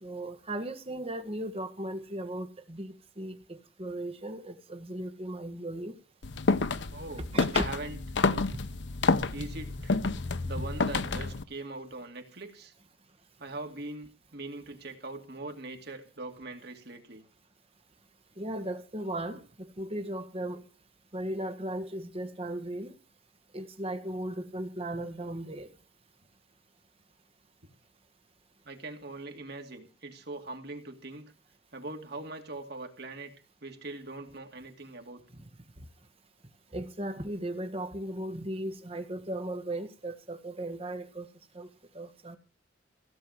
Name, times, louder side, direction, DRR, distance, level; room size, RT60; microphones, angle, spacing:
voice 1, 0.0-5.9 7.3-7.7 8.5-8.6 9.4-9.5 18.4-20.6 21.1-22.9 23.5-25.7 36.7-41.3 41.5-41.7 41.9-42.4, right 1 dB, 30° right, 1.6 m, -37 dB
sound 1, 6.2-11.4, left 3 dB, 65° left, 0.8 m, -29 dB
voice 2, 6.9-7.3 7.5-8.0 9.3-10.0 10.4-12.7 13.4-17.2 28.6-31.3 31.7-33.3 33.6-35.2, right 2 dB, 60° right, 2.4 m, -41 dB
16.0 x 6.9 x 8.1 m
head